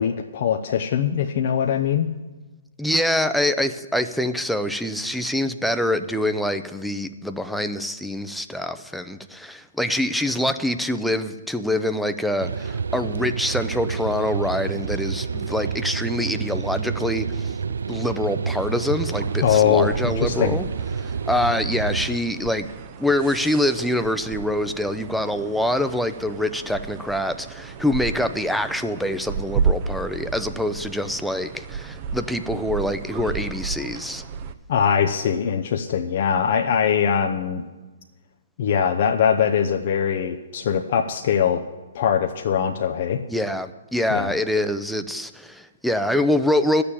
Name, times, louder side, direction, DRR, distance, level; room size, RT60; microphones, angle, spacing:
voice 1, 0.0-2.1 19.4-20.6 34.7-37.6 38.6-41.6 41.9-43.2 44.1-44.3, left 8 dB, 55° left, 3 dB, 0.7 m, -22 dB
voice 2, 2.8-17.6 17.9-20.7 21.0-22.7 23.0-34.2 43.3-46.8, left 1 dB, ahead, 8 dB, 0.6 m, -25 dB
sound 1, 12.4-22.2, right 5 dB, 80° right, 0.4 m, -28 dB
sound 2, 18.5-34.5, right 6 dB, 40° right, 0.7 m, -33 dB
12.0 x 6.8 x 8.7 m, 1.2 s
hypercardioid pair, 130°, 0 cm